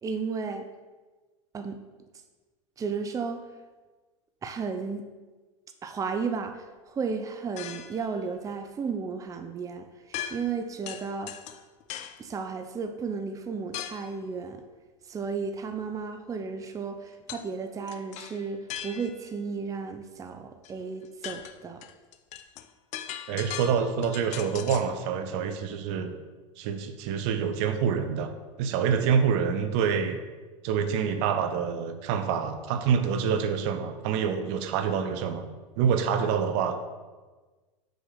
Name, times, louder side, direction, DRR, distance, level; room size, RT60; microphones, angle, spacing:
voice 1, 0.0-0.7 1.5-1.8 2.8-3.5 4.4-5.1 5.8-11.4 12.2-14.6 15.1-21.8, right 5 dB, 20° right, 7 dB, 0.6 m, -34 dB
sound 1, 7.6-8.1 10.1-10.6 10.9-12.2 13.7-14.1 17.3-17.5 17.9-19.3 20.6-20.7 21.1-25.0, left 10 dB, 45° left, 0.6 m, -39 dB
voice 2, 23.3-26.1 26.6-28.3 28.6-30.2 30.6-35.5 35.8-36.8, right 7 dB, 60° right, 8 dB, 0.9 m, -26 dB
6.4 x 4.8 x 6.7 m, 1.3 s
hypercardioid pair, 100°, 16 cm